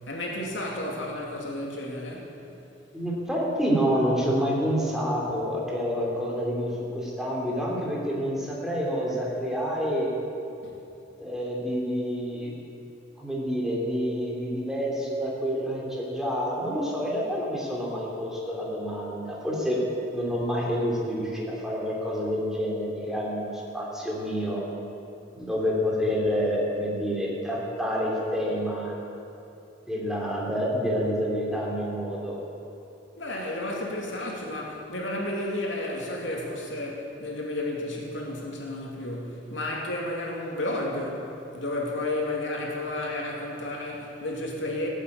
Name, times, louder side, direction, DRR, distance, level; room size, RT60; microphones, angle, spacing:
voice 1, 0.1-2.3 10.6-10.7 33.2-41.3 41.5-44.9, left 1 dB, 90° left, -1 dB, 2.7 m, -32 dB
voice 2, 2.9-10.1 11.2-12.5 13.2-19.8 20.1-24.6 25.3-28.9 29.9-32.3, equal, 5° right, -4 dB, 2.9 m, -28 dB
16.5 x 8.2 x 8.5 m, 2.7 s
head